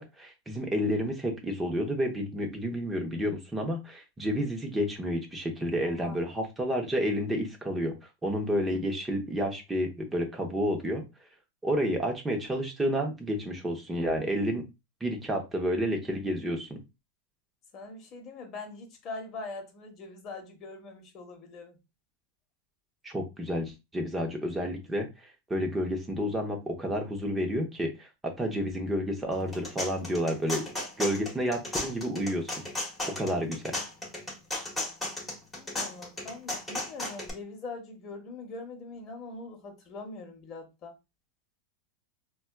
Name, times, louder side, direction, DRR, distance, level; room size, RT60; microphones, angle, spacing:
voice 1, 0.0-7.9 8.2-11.0 11.6-14.6 15.0-16.8 23.0-25.1 25.5-30.6 31.0-32.5 33.1-33.8, equal, 10° right, 0.8 m, -30 dB
voice 2, 5.8-6.2 17.7-21.8 35.6-40.9, left 3 dB, 35° left, 1.0 m, -42 dB
sound 1, 29.3-37.3, left 2 dB, 5° left, 1.2 m, -35 dB
4.1 x 2.3 x 2.2 m
supercardioid pair, 135°, 0 cm